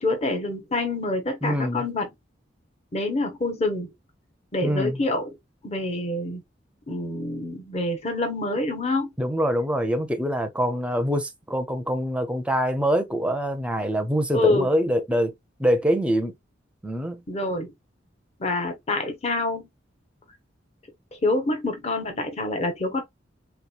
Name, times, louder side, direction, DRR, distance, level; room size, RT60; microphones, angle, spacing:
voice 1, 0.0-2.1 2.9-3.9 4.5-5.3 5.6-6.4 6.9-9.1 14.3-14.7 17.3-17.7 18.4-19.7 21.2-23.0, left 2 dB, 35° left, 0.8 m, -26 dB
voice 2, 1.4-1.8 4.6-5.0 9.2-15.3 15.6-16.3 16.8-17.2, equal, 5° right, 0.5 m, -24 dB
3.4 x 3.0 x 2.3 m
head